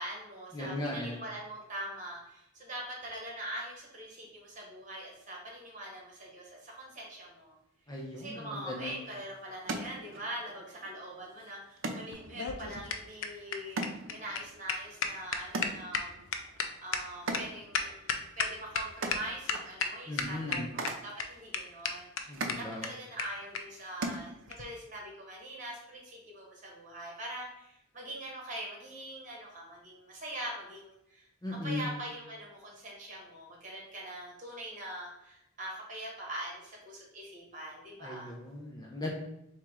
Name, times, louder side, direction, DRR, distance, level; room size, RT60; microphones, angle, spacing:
voice 1, 0.0-7.5 8.1-16.1 16.8-31.3 31.6-38.3, right 1 dB, 35° right, -2 dB, 1.3 m, -43 dB
voice 2, 0.5-1.2 7.9-9.0 20.1-20.6 22.3-22.9 31.4-31.9 38.0-39.1, left 1 dB, 20° left, -1 dB, 0.5 m, -37 dB
sound 1, 8.8-24.9, right 2 dB, 70° right, 0.6 m, -43 dB
sound 2, 12.1-18.8 19.1-19.2 19.5-19.9 20.2-20.9 21.2-21.3 21.5-21.6 21.8-21.9 22.2-22.3 22.5-22.6 22.8-22.9 23.2-23.3 23.5-23.6 24.5-24.6, left 6 dB, 75° left, 0.5 m, -33 dB
3.6 x 2.9 x 4.6 m, 0.81 s
head